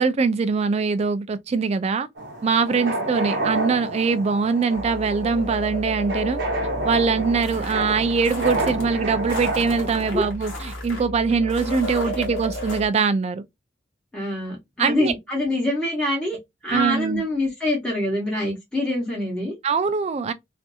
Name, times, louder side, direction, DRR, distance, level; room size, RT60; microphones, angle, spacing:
voice 1, 0.0-2.1 2.4-6.4 6.8-13.4 14.8-15.1 16.7-17.2 19.6-20.3, right 5 dB, 35° right, 0.3 m, -22 dB
sound 1, 2.2-10.3, right 2 dB, 55° right, 0.7 m, -29 dB
sound 2, 4.7-12.9, equal, 40° left, 0.8 m, -33 dB
sound 3, 7.4-8.8 9.3-12.8, left 2 dB, 75° left, 1.1 m, -38 dB
voice 2, 14.1-16.4 16.6-19.5, left 1 dB, 5° left, 1.0 m, -25 dB
2.6 x 2.5 x 2.3 m
head